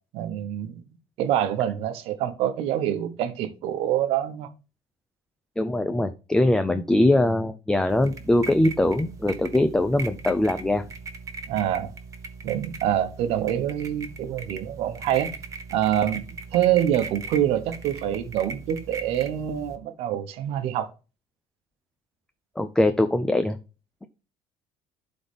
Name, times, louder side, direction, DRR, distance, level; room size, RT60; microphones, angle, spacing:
voice 1, 0.1-0.8 1.2-4.5 6.7-6.8 11.5-11.9 12.4-15.3 15.7-20.9, right 11 dB, 65° right, 1.1 m, -26 dB
voice 2, 5.6-10.9 22.6-23.6, left 1 dB, 5° left, 0.5 m, -22 dB
sound 1, 7.9-19.8, right 4 dB, 30° right, 1.2 m, -39 dB
11.5 x 4.0 x 3.5 m
cardioid pair, 140°, 11 cm